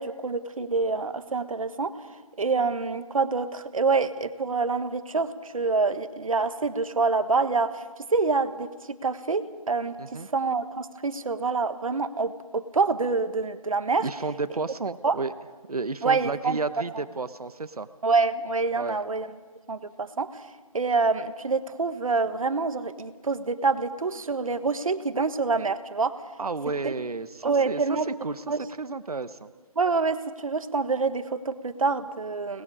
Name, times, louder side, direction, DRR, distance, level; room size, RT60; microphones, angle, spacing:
voice 1, 0.0-2.0 2.4-7.8 8.1-8.7 9.0-14.1 15.0-15.2 16.0-16.6 18.0-19.3 19.7-20.5 20.7-26.2 26.8-26.9 27.4-28.1 28.5-28.7 29.7-32.6, right 4 dB, 65° right, 10 dB, 1.5 m, -26 dB
voice 2, 14.0-15.3 15.7-17.9 18.7-19.0 26.4-28.4 28.8-29.5, right 3 dB, 80° right, 12 dB, 1.1 m, -32 dB
29.5 x 20.0 x 4.9 m, 1.3 s
figure-of-eight pair, 160°, 19 cm